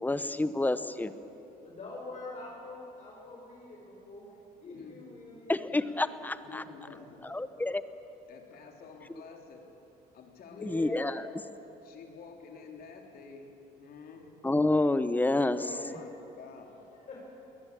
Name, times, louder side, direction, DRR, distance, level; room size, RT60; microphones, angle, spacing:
voice 1, 0.0-1.1 5.5-6.6 7.2-7.8 10.6-11.3 14.4-15.6, left 2 dB, 10° left, 13 dB, 0.9 m, -28 dB
voice 2, 1.6-4.3 4.6-5.9 6.8-7.0 10.4-11.3 15.3-15.9 16.9-17.3, left 2 dB, 45° left, -3 dB, 5.4 m, -45 dB
voice 3, 4.7-5.3 6.4-7.3 8.3-9.7 10.1-10.9 11.8-14.3 15.5-16.7, left 5 dB, 65° left, 2 dB, 3.6 m, -50 dB
22.0 x 19.0 x 8.7 m, 2.9 s
cardioid pair, 110°, 17 cm